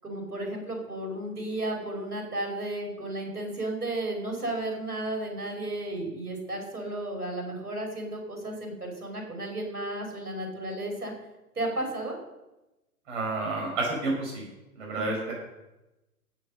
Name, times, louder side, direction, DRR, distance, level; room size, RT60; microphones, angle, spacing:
voice 1, 0.0-11.1 11.6-12.2 14.9-15.1, right 1 dB, 80° right, 1 dB, 5.3 m, -33 dB
voice 2, 13.1-14.4 14.8-15.3, right 2 dB, 50° right, -2 dB, 5.2 m, -30 dB
15.0 x 8.4 x 6.4 m, 0.99 s
figure-of-eight pair, 115°, 46 cm